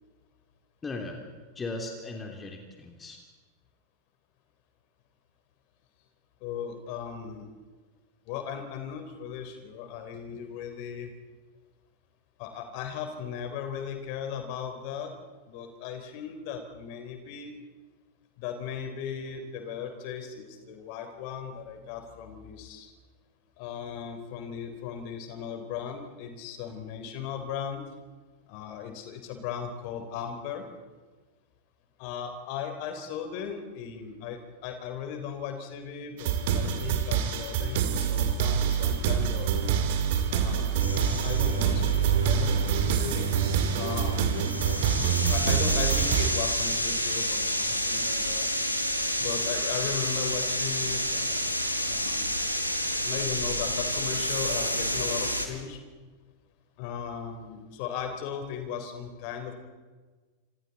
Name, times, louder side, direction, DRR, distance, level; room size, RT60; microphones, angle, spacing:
voice 1, 0.8-1.2 1.5-3.2, left 3 dB, 15° left, 2 dB, 2.9 m, -37 dB
voice 2, 6.4-7.5 8.3-11.1 12.4-15.1 15.5-17.5 18.4-22.9 23.6-27.9 28.5-30.7 32.0-39.5 40.3-40.8 41.1-43.3 43.7-44.5 45.3-48.5 49.2-51.5 51.9-52.4 53.0-55.8 56.8-59.5, left 7 dB, 45° left, 6 dB, 3.6 m, -37 dB
sound 1, 36.2-46.3, right 7 dB, 50° right, 2.5 m, -26 dB
sound 2, 40.8-55.5, equal, 90° left, 2.2 m, -30 dB
30.0 x 27.0 x 4.2 m, 1.4 s
figure-of-eight pair, 90°, 0 cm